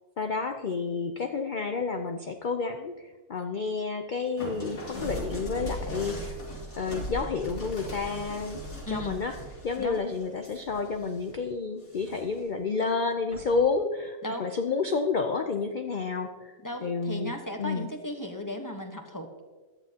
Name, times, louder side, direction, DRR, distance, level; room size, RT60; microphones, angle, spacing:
voice 1, 0.2-6.4 6.8-9.3 9.6-16.5 16.8-17.9, left 4 dB, 60° left, 5 dB, 0.5 m, -30 dB
sound 1, 4.4-11.4 11.8-12.5 13.3-13.6, right 1 dB, 85° left, 3.0 m, -39 dB
voice 2, 8.8-9.2 9.8-10.0 14.2-14.5 16.6-19.3, equal, 15° left, 4 dB, 0.9 m, -36 dB
17.0 x 11.5 x 2.9 m, 1.3 s
omnidirectional pair, 1.6 m